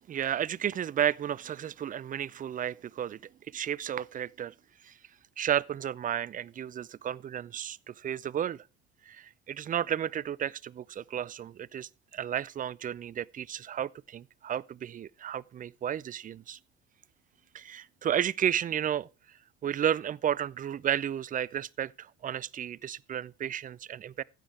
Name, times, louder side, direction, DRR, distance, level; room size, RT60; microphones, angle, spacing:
voice 1, 0.1-3.2 3.5-4.5 4.8-4.9 5.4-8.6 9.1-16.6 17.5-19.1 19.6-24.2, right 10 dB, 25° right, 0.5 m, -32 dB
15.0 x 7.6 x 4.8 m
hypercardioid pair, 65°, 32 cm